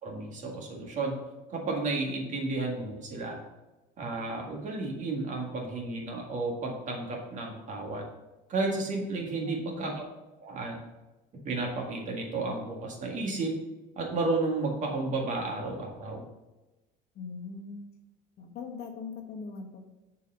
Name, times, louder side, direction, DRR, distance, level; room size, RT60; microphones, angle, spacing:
voice 1, 0.0-1.2 1.5-3.4 4.0-8.1 8.5-10.1 10.4-10.8 11.5-13.6 14.0-16.3, right 3 dB, 40° right, 0 dB, 1.9 m, -32 dB
voice 2, 9.4-9.8 17.1-17.8 18.4-19.9, left 5 dB, 60° left, 3 dB, 1.3 m, -41 dB
6.9 x 4.6 x 5.5 m, 1.0 s
cardioid pair, 125°, 19 cm